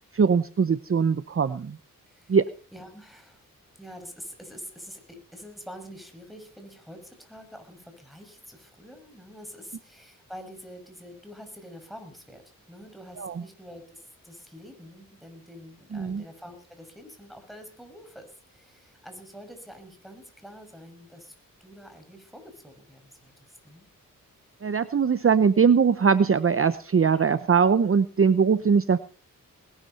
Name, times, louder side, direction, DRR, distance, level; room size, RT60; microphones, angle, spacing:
voice 1, 0.1-1.8 2.3-2.4 13.2-13.4 15.9-16.2 24.6-29.0, right 6 dB, 40° right, 13 dB, 0.8 m, -21 dB
voice 2, 2.1-2.4 2.7-3.5 3.8-21.3 21.6-23.3 23.6-23.8, equal, ahead, 6 dB, 6.1 m, -46 dB
20.0 x 12.5 x 4.2 m, 0.39 s
cardioid pair, 65°, 33 cm